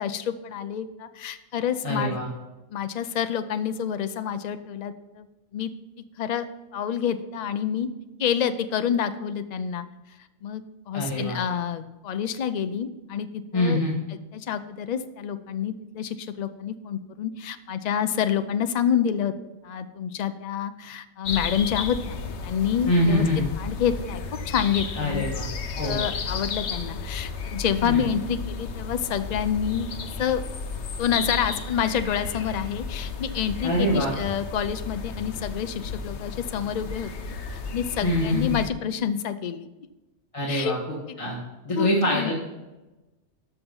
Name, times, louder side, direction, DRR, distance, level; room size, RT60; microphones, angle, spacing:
voice 1, 0.0-2.2 2.7-5.3 5.5-5.7 6.2-6.5 6.7-7.9 8.2-9.9 10.4-13.8 14.3-19.3 19.6-23.3 23.6-25.3 25.8-29.9 30.2-30.4 31.0-39.7 40.5-40.8 41.1-41.2 41.7-42.3, left 8 dB, 90° left, 11 dB, 0.3 m, -28 dB
voice 2, 1.8-2.3 10.9-11.4 13.5-13.9 22.9-23.5 25.0-25.5 25.7-26.0 27.8-28.0 33.6-34.1 38.0-38.6 40.3-40.8 41.2-41.4 41.6-42.3, left 1 dB, 25° left, -6 dB, 1.6 m, -24 dB
sound 1, 21.2-38.7, left 5 dB, 60° left, 1.1 m, -33 dB
13.0 x 5.8 x 5.4 m, 1.1 s
omnidirectional pair, 1.4 m